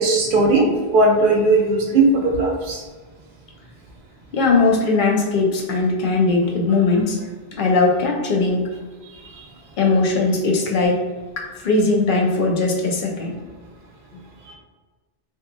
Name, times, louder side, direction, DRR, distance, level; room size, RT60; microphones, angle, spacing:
voice 1, 0.0-2.8, right 2 dB, 65° right, 0 dB, 0.7 m, -17 dB
voice 2, 4.3-7.2 7.5-8.7 9.8-11.0 11.4-13.3, left 3 dB, 60° left, -1 dB, 0.7 m, -19 dB
2.8 x 2.2 x 2.4 m, 1.3 s
omnidirectional pair, 1.1 m